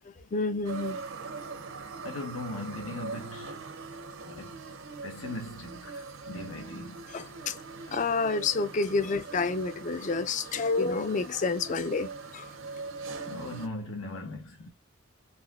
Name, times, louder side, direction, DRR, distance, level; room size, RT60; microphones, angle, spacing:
voice 1, 0.3-1.0 7.1-7.6 7.9-12.5, left 4 dB, 40° left, 0.3 m, -29 dB
sound 1, 0.6-13.7, right 4 dB, 85° right, 0.8 m, -42 dB
voice 2, 2.0-3.6 4.3-4.6 5.0-7.0 13.3-14.7, left 2 dB, 90° left, 0.9 m, -39 dB
4.0 x 2.7 x 2.4 m
head